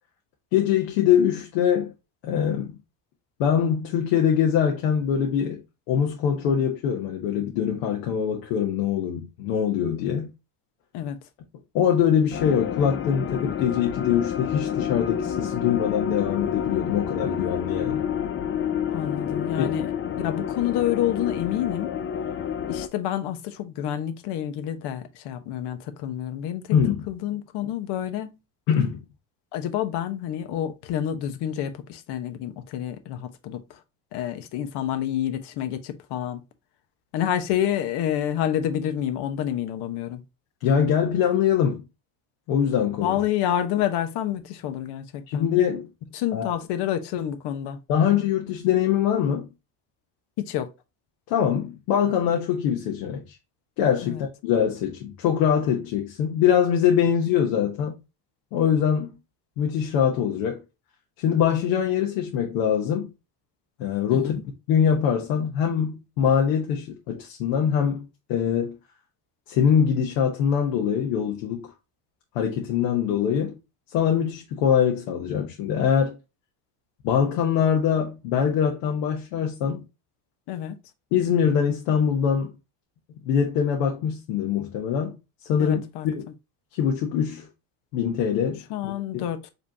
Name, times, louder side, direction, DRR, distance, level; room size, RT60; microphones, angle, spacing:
voice 1, 0.5-1.9 2.2-2.7 3.4-10.3 11.7-18.1 19.6-19.7 26.7-27.0 28.7-29.0 40.6-41.8 42.5-43.2 45.3-45.9 46.3-46.5 47.9-49.5 51.3-53.3 53.8-57.9 58.5-59.1 59.6-60.6 61.2-63.1 63.8-64.4 64.7-68.8 69.5-71.6 72.3-73.6 73.9-76.2 77.0-79.8 81.1-82.5 83.2-85.2 85.5-86.2 86.7-87.5 87.9-89.2, left 8 dB, 85° left, 1.2 m, -23 dB
sound 1, 12.3-22.9, left 8 dB, 30° left, 0.4 m, -29 dB
voice 2, 18.9-21.9 22.7-26.8 27.1-28.4 29.5-33.8 34.1-36.4 37.1-40.2 43.0-45.5 46.1-47.8 50.4-50.7 54.0-54.3 64.1-64.4 80.5-80.8 85.6-86.1 88.7-89.5, left 11 dB, 60° left, 1.0 m, -28 dB
5.2 x 3.3 x 2.7 m
cardioid pair, 125°, 45 cm